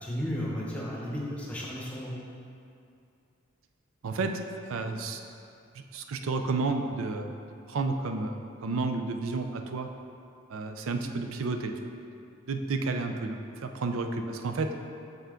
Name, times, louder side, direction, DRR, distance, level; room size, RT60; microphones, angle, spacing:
voice 1, 0.0-2.1, equal, 5° left, -4 dB, 0.9 m, -34 dB
voice 2, 4.0-5.2 5.7-7.3 7.7-8.4 8.6-9.9 10.5-11.7 12.5-14.7, right 3 dB, 90° right, 6 dB, 0.4 m, -31 dB
6.1 x 5.7 x 3.7 m, 2.5 s
head